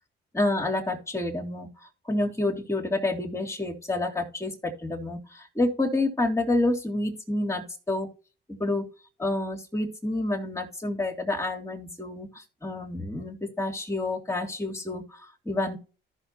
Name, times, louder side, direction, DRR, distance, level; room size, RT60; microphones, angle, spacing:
voice 1, 0.3-8.1 8.5-8.9 9.2-15.8, left 2 dB, 15° left, 2 dB, 3.4 m, -29 dB
14.5 x 6.6 x 2.9 m, 0.34 s
cardioid pair, 90°, 20 cm